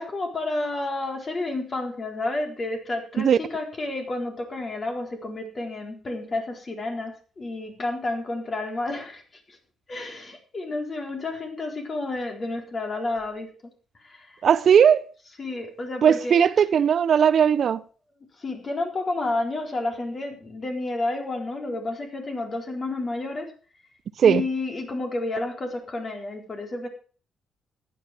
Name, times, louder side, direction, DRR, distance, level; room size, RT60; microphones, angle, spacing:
voice 1, 0.0-9.6 9.9-13.5 14.0-14.4 15.4-16.4 18.4-23.5 24.2-26.9, left 2 dB, 35° left, 4.1 m, -30 dB
voice 2, 14.4-15.1 16.0-17.8 24.2-24.4, right 8 dB, 55° right, 0.6 m, -18 dB
14.5 x 10.5 x 5.0 m
cardioid pair, 100°, 0 cm